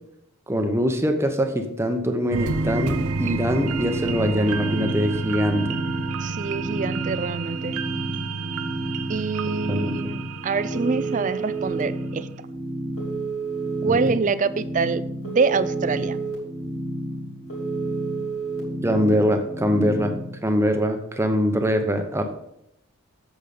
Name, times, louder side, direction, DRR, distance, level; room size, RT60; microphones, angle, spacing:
voice 1, 0.5-5.7 9.7-10.1 13.9-14.2 18.8-22.2, equal, 10° right, 6 dB, 0.8 m, -23 dB
sound 1, 2.1-20.3, right 1 dB, 5° left, 1.5 m, -32 dB
sound 2, 2.3-11.7 12.1-12.2, right 4 dB, 85° right, 0.6 m, -30 dB
voice 2, 6.2-7.8 9.1-12.3 13.8-16.2, right 4 dB, 35° right, 14 dB, 0.4 m, -25 dB
Telephone, 10.7-11.8 13.0-14.1 15.2-16.3 17.5-18.6, right 7 dB, 65° left, 2.7 m, -30 dB
8.4 x 7.2 x 4.1 m, 0.80 s
head